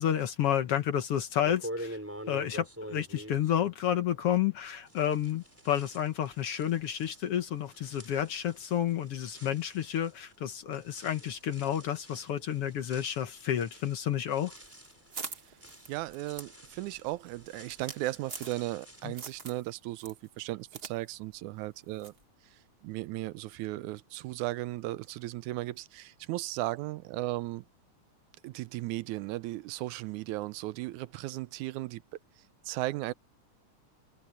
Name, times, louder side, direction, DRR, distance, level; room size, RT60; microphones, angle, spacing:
voice 1, 0.0-2.0 2.3-14.5 19.0-19.1, left 10 dB, 60° left, 1.7 m, -30 dB
sound 1, 1.4-4.5 4.9-19.6, equal, 5° right, 3.9 m, -47 dB
sound 2, 14.5-18.8 19.1-19.6 20.0-20.9 21.2-21.3 22.0-22.2, right 5 dB, 60° right, 0.6 m, -44 dB
voice 2, 15.9-22.1 22.8-27.7 28.4-32.0 32.7-33.1, right 18 dB, 85° right, 2.0 m, -36 dB
omnidirectional pair, 3.4 m